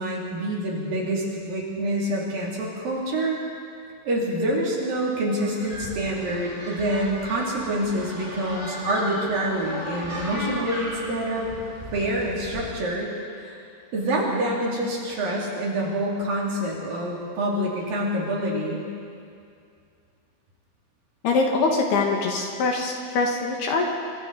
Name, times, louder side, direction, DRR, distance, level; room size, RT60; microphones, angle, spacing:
voice 1, 0.0-3.4 4.0-11.5 11.9-13.1 13.4-13.6 13.9-18.9, right 1 dB, 50° right, -3 dB, 4.3 m, -26 dB
sound 1, 5.4-12.8, equal, 10° left, 6.1 m, -36 dB
voice 2, 21.2-23.9, left 3 dB, 65° left, 0 dB, 3.4 m, -24 dB
26.0 x 24.0 x 4.2 m, 2.4 s
omnidirectional pair, 5.4 m